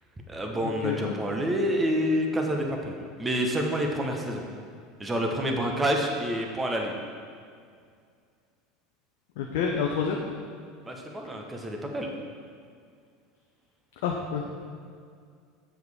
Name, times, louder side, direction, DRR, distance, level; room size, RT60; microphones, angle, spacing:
voice 1, 0.3-4.4 5.0-7.0 10.9-12.1, equal, 15° right, 2 dB, 1.1 m, -28 dB
voice 2, 0.8-1.1 9.4-10.2 14.0-14.4, left 6 dB, 65° left, 0 dB, 0.7 m, -28 dB
7.8 x 7.2 x 3.6 m, 2.2 s
hypercardioid pair, 75°, 0 cm